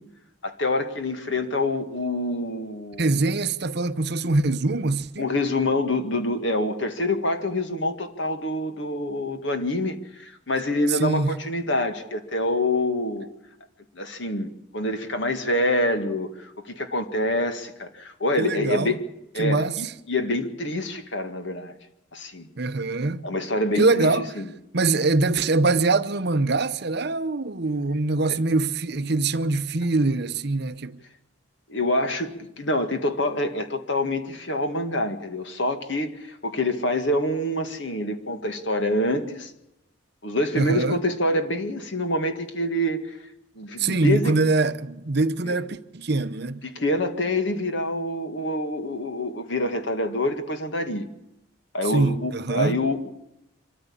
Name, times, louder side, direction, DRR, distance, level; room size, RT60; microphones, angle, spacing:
voice 1, 0.4-3.1 5.2-13.3 13.9-19.0 19.3-21.7 22.1-22.5 23.2-24.5 28.3-28.4 31.7-39.5 40.2-43.2 43.6-44.3 45.5-45.6 46.6-51.1 51.7-53.0, left 1 dB, 60° left, 1.9 m, -26 dB
voice 2, 3.0-5.3 10.9-11.4 18.4-19.0 19.4-19.8 22.6-23.2 23.8-24.3 24.7-31.0 40.5-41.0 43.8-46.6 51.9-52.8, right 3 dB, 50° right, 0.8 m, -23 dB
24.5 x 13.5 x 8.7 m
head